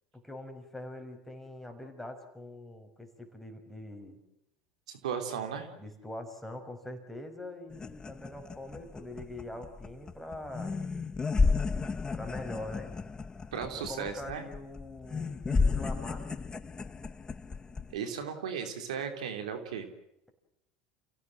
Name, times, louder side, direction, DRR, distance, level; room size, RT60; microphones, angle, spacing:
voice 1, 0.1-4.2 5.8-10.8 12.1-12.9 13.7-16.4, left 1 dB, 5° left, 5 dB, 5.7 m, -43 dB
voice 2, 4.9-5.7 13.5-14.4 17.9-19.9, right 7 dB, 80° right, 7 dB, 3.2 m, -36 dB
sound 1, 7.7-17.9, left 4 dB, 20° left, 1.0 m, -33 dB
29.5 x 16.5 x 7.6 m, 0.83 s
hypercardioid pair, 85°, 4 cm